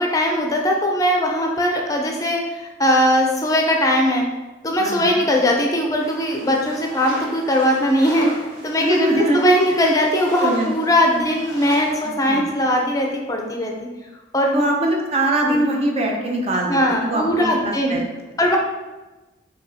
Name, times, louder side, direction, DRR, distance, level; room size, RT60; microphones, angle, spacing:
voice 1, 0.0-4.2 4.6-8.3 8.6-13.7 14.3-14.6 15.5-15.6 16.7-18.0 18.4-18.6, equal, 20° left, 0 dB, 0.5 m, -19 dB
voice 2, 4.8-5.2 8.8-9.4 10.4-10.7 12.3-12.4 14.5-18.0 18.3-18.4, right 1 dB, 35° right, 0 dB, 0.6 m, -22 dB
sound 1, 6.0-12.0, equal, 55° right, 1.5 m, -37 dB
5.1 x 2.9 x 2.8 m, 1.1 s
head